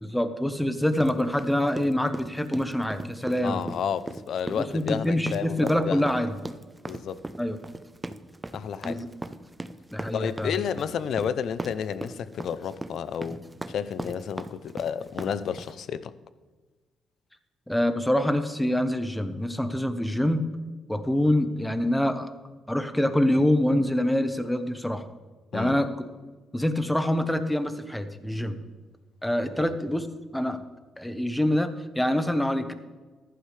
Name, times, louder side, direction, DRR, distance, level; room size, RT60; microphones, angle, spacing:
voice 1, 0.0-3.6 4.5-6.4 7.4-7.6 8.8-9.1 9.9-10.6 17.7-20.4 20.9-22.3 22.7-25.0 25.5-25.9 26.5-28.6 29.2-30.1 30.3-30.6 31.0-32.7, left 1 dB, 5° left, 1.0 m, -25 dB
sound 1, 0.9-15.8, right 2 dB, 15° right, 0.7 m, -38 dB
voice 2, 3.4-6.1 6.9-7.2 8.5-9.0 10.1-16.1 25.5-25.8 29.6-29.7, left 8 dB, 65° left, 0.6 m, -31 dB
14.5 x 11.5 x 3.3 m
cardioid pair, 90°, 0 cm